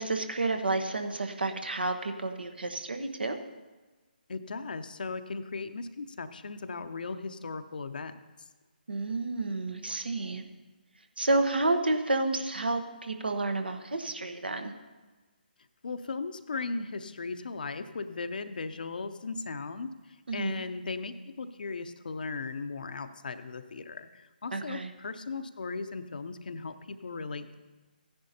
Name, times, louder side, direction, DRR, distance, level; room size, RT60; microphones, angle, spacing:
voice 1, 0.0-3.4 8.9-10.4 11.2-14.7 20.3-20.6 24.5-24.9, right 2 dB, 75° right, 7 dB, 1.1 m, -30 dB
voice 2, 4.3-8.1 15.8-19.9 20.3-27.5, left 4 dB, 60° left, 10 dB, 0.7 m, -37 dB
15.5 x 10.5 x 2.8 m, 1.2 s
figure-of-eight pair, 145°, 5 cm